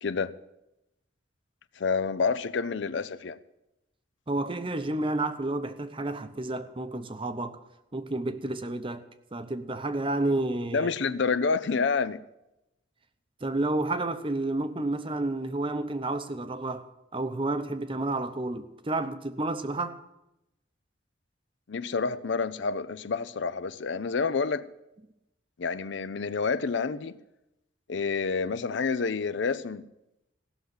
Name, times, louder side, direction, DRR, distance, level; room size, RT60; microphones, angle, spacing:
voice 1, 0.0-0.3 1.8-3.4 10.7-12.2 21.7-24.7 25.6-27.1 27.9-29.9, left 5 dB, 60° left, 0.5 m, -28 dB
voice 2, 4.3-7.6 7.9-9.0 9.3-10.9 13.4-20.0, right 2 dB, 25° right, 0.8 m, -30 dB
16.0 x 6.4 x 9.4 m
head